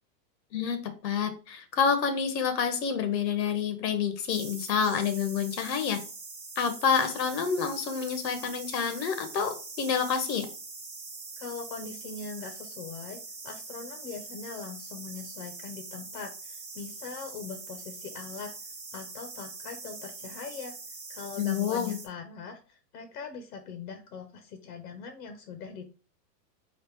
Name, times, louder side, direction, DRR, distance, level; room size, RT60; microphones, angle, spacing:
voice 1, 0.5-6.0 6.5-10.5 21.4-22.0, left 6 dB, 90° left, 7 dB, 1.3 m, -28 dB
sound 1, 4.3-22.1, right 3 dB, 15° right, 0.7 m, -43 dB
voice 2, 11.4-20.7 21.1-25.8, left 5 dB, 75° left, 5 dB, 1.0 m, -41 dB
4.2 x 2.5 x 4.5 m, 0.36 s
supercardioid pair, 155°, 49 cm